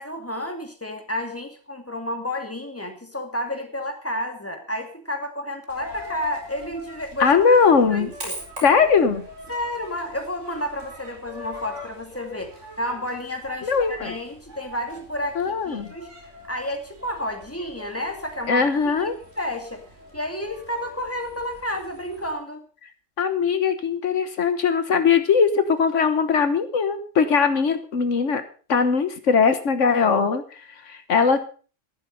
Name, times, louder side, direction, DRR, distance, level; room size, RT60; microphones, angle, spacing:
voice 1, 0.0-7.3 7.9-8.4 9.5-16.1 16.5-19.8 20.1-22.6, left 1 dB, 10° left, 4 dB, 2.4 m, -31 dB
Coin (dropping), 5.7-22.3, left 1 dB, 75° right, 5.0 m, -42 dB
voice 2, 7.2-8.1 8.6-9.2 13.6-14.1 15.3-15.9 18.5-19.1 23.2-28.4 28.7-31.5, left 5 dB, 80° left, 10 dB, 1.6 m, -20 dB
13.5 x 11.5 x 5.4 m, 0.39 s
omnidirectional pair, 1.3 m